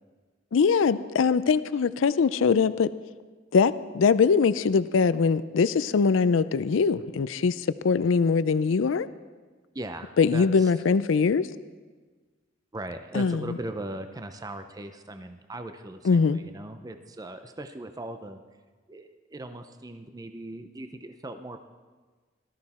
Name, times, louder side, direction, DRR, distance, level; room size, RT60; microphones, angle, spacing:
voice 1, 0.5-2.9 3.5-9.1 10.2-11.5 13.1-13.6 16.0-16.4, left 5 dB, 75° left, 16 dB, 0.4 m, -22 dB
voice 2, 9.7-10.7 12.7-18.4 18.9-21.6, right 1 dB, 20° right, 8 dB, 0.6 m, -39 dB
18.0 x 13.5 x 4.2 m, 1.4 s
head